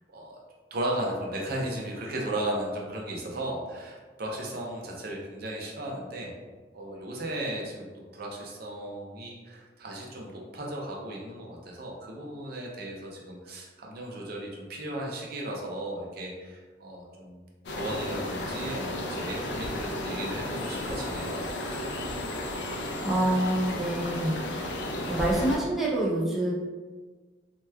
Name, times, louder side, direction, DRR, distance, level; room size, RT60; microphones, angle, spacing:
voice 1, 0.7-6.3 6.7-17.4 17.7-21.5, right 1 dB, 60° right, -2 dB, 0.6 m, -35 dB
sound 1, 17.7-25.6, left 1 dB, 70° left, 0.5 m, -33 dB
voice 2, 23.0-24.7 25.0-26.5, right 1 dB, ahead, -6 dB, 0.4 m, -27 dB
2.9 x 2.2 x 3.3 m, 1.4 s
head